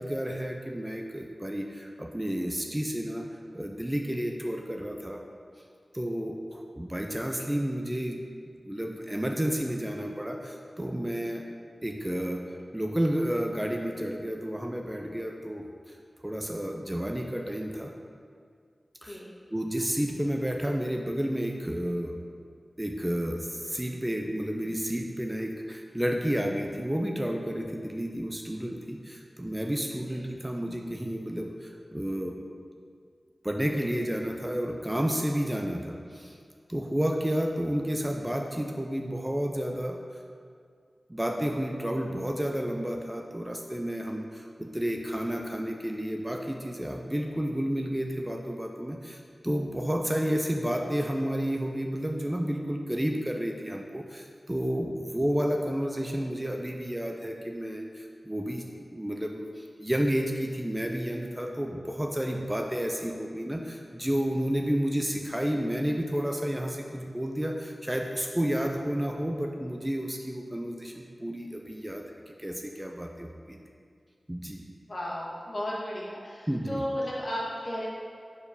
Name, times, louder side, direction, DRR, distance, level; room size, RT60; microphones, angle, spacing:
voice 1, 0.0-3.3 3.5-5.2 5.9-8.2 8.6-11.4 11.8-12.4 12.7-16.0 16.2-17.9 19.0-19.2 19.5-22.1 22.8-32.4 33.4-36.4 36.7-40.0 41.1-73.6 74.3-74.6 76.5-76.8, equal, 15° right, 2 dB, 0.4 m, -31 dB
voice 2, 74.9-77.9, equal, 50° left, -5 dB, 1.5 m, -34 dB
4.9 x 4.5 x 5.0 m, 2.2 s
wide cardioid pair, 70°, 0 cm